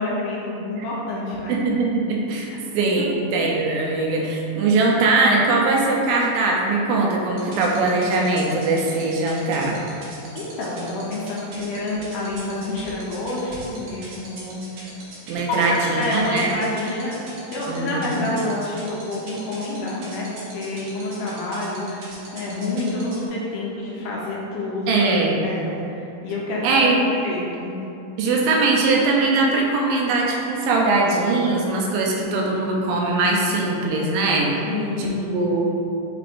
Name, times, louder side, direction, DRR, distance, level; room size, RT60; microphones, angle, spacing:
voice 1, 0.0-1.6 2.5-2.6 3.0-3.1 10.4-14.8 15.5-15.6 15.9-24.9 25.4-27.8 34.6-35.4, left 2 dB, 80° left, -4 dB, 2.0 m, -28 dB
voice 2, 1.5-2.5 2.7-9.8 15.3-16.5 17.7-18.3 24.9-25.4 26.6-27.0 28.2-34.5 35.0-35.6, right 3 dB, 85° right, -1 dB, 2.2 m, -21 dB
sound 1, 7.4-23.3, right 3 dB, 65° right, 1.8 m, -40 dB
5.6 x 3.4 x 2.5 m, 2.8 s
omnidirectional pair, 3.9 m